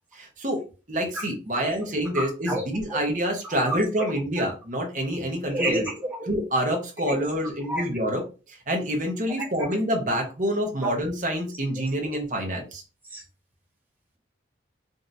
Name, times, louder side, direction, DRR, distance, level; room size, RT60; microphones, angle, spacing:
voice 1, 0.1-0.6 0.9-5.8 6.3-8.2 8.7-12.8, equal, 45° right, 1.1 m, -27 dB
voice 2, 2.1-2.6 3.4-4.1 5.5-6.3 7.1-7.2 7.7-7.8 10.8-10.9 12.0-12.1 13.1-13.2, right 1 dB, 10° right, 1.2 m, -29 dB
5.2 x 2.6 x 2.7 m
head